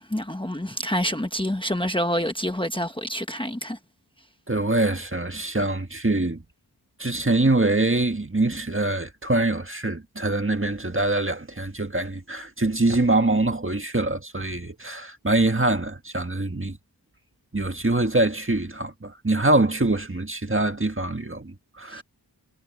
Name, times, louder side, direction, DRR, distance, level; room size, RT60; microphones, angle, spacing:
voice 1, 0.0-3.8 21.9-22.0, equal, 10° left, 1.2 m, -27 dB
voice 2, 4.5-6.4 7.0-16.8 17.5-22.0, right 2 dB, 30° right, 1.8 m, -24 dB
wide cardioid pair, 65°, 43 cm